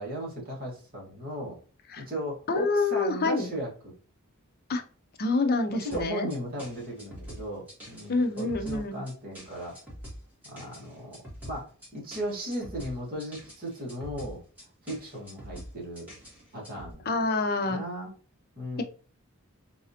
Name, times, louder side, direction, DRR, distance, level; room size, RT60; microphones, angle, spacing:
voice 1, 0.0-1.6 2.0-3.9 5.7-9.8 10.4-11.2 11.4-14.4 14.8-16.1 16.5-17.1 17.6-18.1 18.6-18.8, equal, 40° right, -3 dB, 1.5 m, -36 dB
voice 2, 2.5-3.5 4.7-4.8 5.2-6.3 8.1-9.0 17.1-17.8, left 3 dB, 45° left, 6 dB, 0.5 m, -27 dB
sound 1, 5.9-16.9, equal, 10° right, 1.5 m, -44 dB
4.0 x 2.6 x 2.7 m, 0.39 s
head